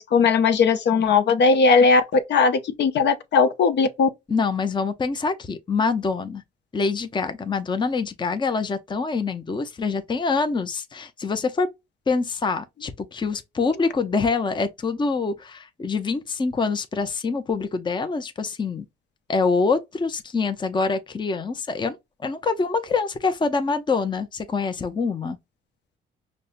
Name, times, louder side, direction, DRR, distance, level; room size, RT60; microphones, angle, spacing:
voice 1, 0.0-4.1, left 4 dB, 60° left, 0.6 m, -18 dB
voice 2, 4.3-6.4 6.7-11.7 12.1-18.8 19.3-25.4, left 4 dB, 25° left, 0.6 m, -25 dB
5.3 x 2.1 x 2.5 m
cardioid pair, 90°, 20 cm